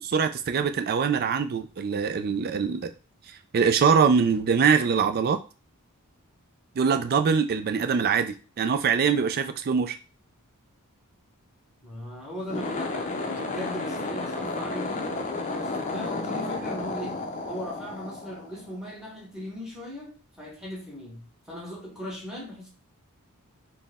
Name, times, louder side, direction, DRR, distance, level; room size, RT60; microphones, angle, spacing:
voice 1, 0.1-2.9 3.5-5.4 6.8-10.0, right 6 dB, 45° right, 9 dB, 0.4 m, -23 dB
voice 2, 11.8-15.1 15.5-22.7, equal, 5° right, -2 dB, 1.1 m, -38 dB
sound 1, 12.4-18.9, left 3 dB, 35° left, 0.5 m, -32 dB
4.1 x 2.1 x 3.5 m, 0.33 s
head